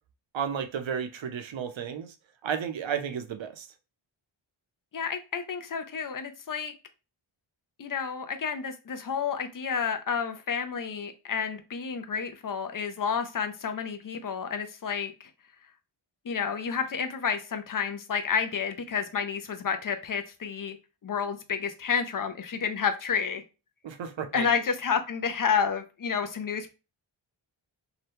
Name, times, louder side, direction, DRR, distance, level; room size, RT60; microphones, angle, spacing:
voice 1, 0.3-2.1 2.4-3.7 23.8-24.5, right 7 dB, 65° right, 0.6 m, -33 dB
voice 2, 4.9-6.7 7.8-15.1 16.2-20.8 21.0-23.4 24.3-26.7, left 6 dB, 45° left, 0.5 m, -30 dB
2.8 x 2.2 x 3.3 m
wide cardioid pair, 95°, 50 cm